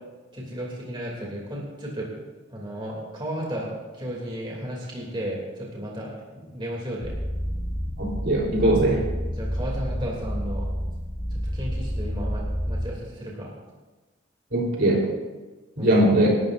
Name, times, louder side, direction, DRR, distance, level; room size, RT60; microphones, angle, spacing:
voice 1, 0.3-2.2 2.5-7.1 9.4-10.7 11.3-13.5 15.8-15.9, equal, 25° right, -3 dB, 2.9 m, -34 dB
sound 1, 7.0-12.9, equal, 25° left, 1.3 m, -29 dB
voice 2, 8.0-9.0 14.5-15.0 15.8-16.4, right 1 dB, 65° right, -2 dB, 3.8 m, -20 dB
26.5 x 13.0 x 2.6 m, 1.2 s
head